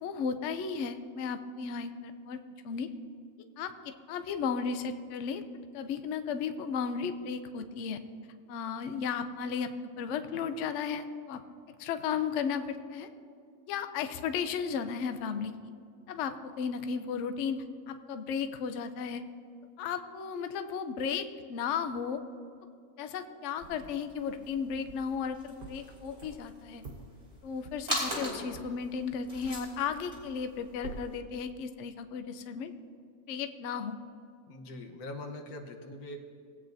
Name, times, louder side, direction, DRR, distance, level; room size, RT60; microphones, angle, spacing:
voice 1, 0.0-2.9 3.6-5.4 5.7-8.0 8.5-11.4 11.8-13.1 13.7-15.5 16.1-19.2 19.8-22.2 23.0-26.8 27.4-32.7 33.3-34.0, left 6 dB, 65° left, 9 dB, 0.8 m, -34 dB
sound 1, 23.6-31.1, equal, 25° right, 3.0 m, -41 dB
sound 2, 24.2-25.2 25.6-29.8 30.1-30.6 30.8-31.3, right 4 dB, 75° right, 1.5 m, -48 dB
voice 2, 34.5-36.2, left 1 dB, 90° left, 4 dB, 1.5 m, -42 dB
19.0 x 8.7 x 2.6 m, 2.3 s
omnidirectional pair, 1.5 m